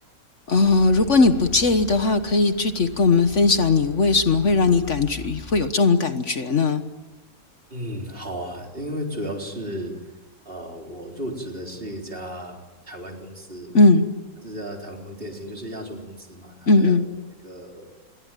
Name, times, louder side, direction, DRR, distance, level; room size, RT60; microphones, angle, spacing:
voice 1, 0.5-6.8 13.7-14.0 16.7-17.0, left 3 dB, 55° left, 9 dB, 1.6 m, -18 dB
sound 1, 0.6-5.7, left 3 dB, 20° left, 1.9 m, -42 dB
voice 2, 7.7-10.1 10.4-12.6 12.9-13.8 14.4-17.0 17.4-17.9, equal, 40° right, 2 dB, 4.3 m, -34 dB
28.0 x 22.0 x 9.1 m, 1.2 s
omnidirectional pair, 1.5 m